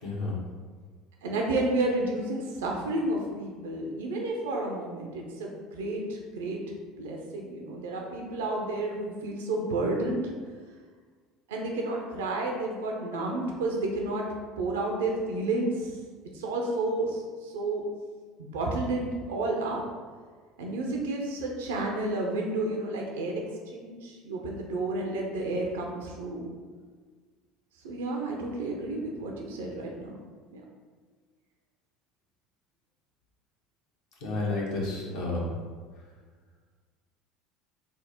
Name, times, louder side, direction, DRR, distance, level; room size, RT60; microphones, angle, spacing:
voice 1, 0.0-0.4 34.2-35.5, left 2 dB, 70° left, -4 dB, 1.1 m, -31 dB
voice 2, 1.2-6.6 7.0-10.3 11.5-14.3 14.6-16.0 16.3-17.9 18.5-19.8 20.6-23.4 23.7-26.5 27.8-30.2 30.5-30.6, right 2 dB, 80° right, 0 dB, 0.5 m, -31 dB
3.5 x 2.1 x 4.2 m, 1.5 s
hypercardioid pair, 75°, 0 cm